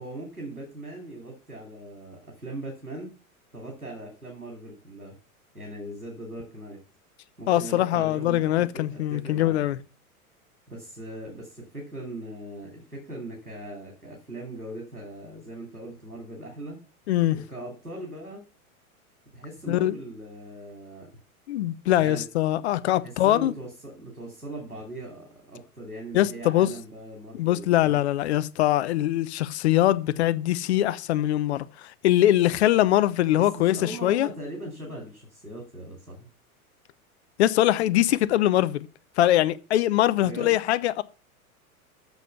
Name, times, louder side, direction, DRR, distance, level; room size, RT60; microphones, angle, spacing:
voice 1, 0.0-3.1 3.5-5.2 5.5-6.8 7.4-9.6 10.7-16.8 17.5-18.4 19.3-21.1 21.9-22.3 23.0-28.0 33.4-36.3 40.2-40.6, right 1 dB, 90° right, 3.0 m, -40 dB
voice 2, 7.5-9.8 17.1-17.4 19.7-20.0 21.5-23.5 26.1-26.7 27.3-31.6 32.0-34.3 37.4-38.9 39.2-41.0, left 13 dB, 50° left, 0.8 m, -22 dB
8.1 x 6.5 x 6.7 m
figure-of-eight pair, 95°, 44 cm